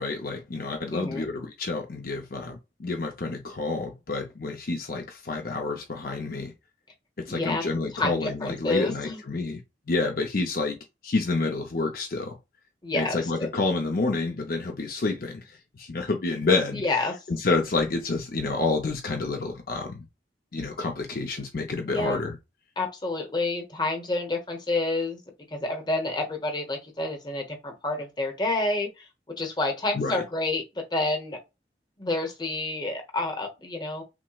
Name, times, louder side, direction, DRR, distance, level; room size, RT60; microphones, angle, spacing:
voice 1, 0.0-6.5 7.2-9.6 9.9-10.8 11.0-12.4 12.9-16.8 17.3-20.0 20.5-22.3 29.9-30.2, left 3 dB, 55° left, 0.6 m, -28 dB
voice 2, 0.9-1.3 7.3-7.6 7.9-9.2 12.8-13.5 16.7-17.2 21.8-22.2 22.8-25.2 25.5-29.1 29.4-31.4 32.0-34.0, left 2 dB, 25° left, 0.9 m, -29 dB
5.9 x 2.1 x 2.3 m
head